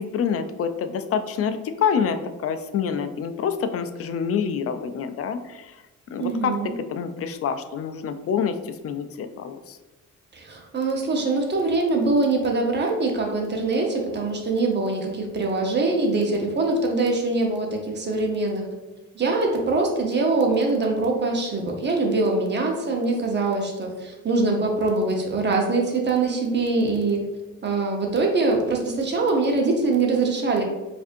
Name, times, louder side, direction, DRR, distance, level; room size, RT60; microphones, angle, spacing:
voice 1, 0.0-5.8 6.1-6.6 6.9-9.8, left 7 dB, 50° left, 9 dB, 0.4 m, -27 dB
voice 2, 6.2-6.7 10.3-18.7 19.1-27.2 27.6-30.6, right 3 dB, 35° right, 1 dB, 0.9 m, -23 dB
4.8 x 2.6 x 2.6 m, 1.2 s
cardioid pair, 90°, 30 cm